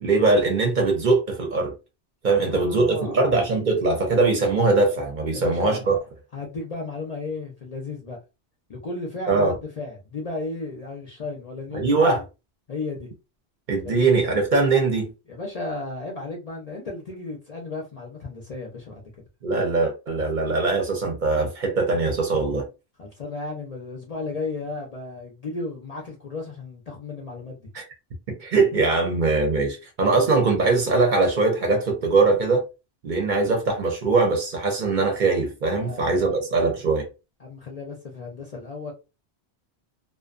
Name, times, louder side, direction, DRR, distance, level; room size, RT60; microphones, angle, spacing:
voice 1, 0.0-1.7 2.2-6.0 9.3-9.5 11.7-12.2 13.7-15.1 19.4-22.7 27.7-27.8 28.3-32.6 33.0-37.1, right 3 dB, 50° right, 0.7 m, -21 dB
voice 2, 2.3-3.3 5.3-6.0 6.3-8.2 8.7-12.0 12.7-13.1 13.8-14.1 15.3-19.0 23.0-27.6 30.0-30.3 35.7-36.4 37.4-38.9, left 3 dB, 45° left, 0.5 m, -34 dB
2.5 x 2.1 x 2.4 m
omnidirectional pair, 1.1 m